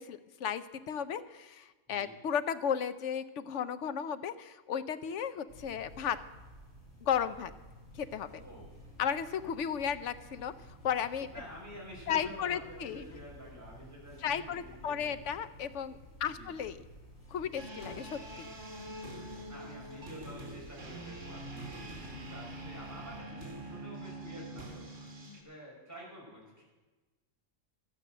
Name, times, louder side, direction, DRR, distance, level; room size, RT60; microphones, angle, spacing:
voice 1, 0.0-6.2 7.0-7.5 8.0-8.4 9.0-10.5 10.8-11.3 12.1-13.0 14.2-16.8 17.3-18.5, left 8 dB, 70° left, 12 dB, 1.0 m, -34 dB
sound 1, 5.5-23.2, equal, 50° left, 4.3 m, -53 dB
voice 2, 8.4-8.7 11.3-15.4 16.2-16.6 19.5-24.9 25.4-26.6, equal, 10° right, -5 dB, 5.2 m, -49 dB
sound 2, 17.5-25.4, right 1 dB, 70° right, 2.4 m, -45 dB
13.0 x 9.3 x 7.6 m, 1.2 s
omnidirectional pair, 1.3 m